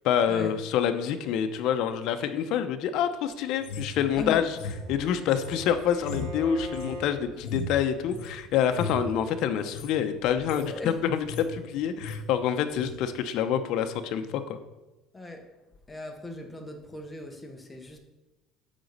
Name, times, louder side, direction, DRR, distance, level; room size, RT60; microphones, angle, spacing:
voice 1, 0.0-4.6 4.9-10.7 11.4-14.6, left 9 dB, 60° left, 0.7 m, -27 dB
sound 1, 3.6-8.4 8.7-9.1 9.6-9.9 10.3-10.7 11.0-11.6 11.8-12.2 12.7-13.0, left 3 dB, 80° left, 1.2 m, -37 dB
Bowed string instrument, 4.0-7.2, equal, 80° right, 2.2 m, -41 dB
voice 2, 10.6-11.0 15.1-15.5 15.9-18.0, left 2 dB, 10° left, 1.0 m, -38 dB
9.0 x 4.0 x 6.6 m
cardioid pair, 155°, 0 cm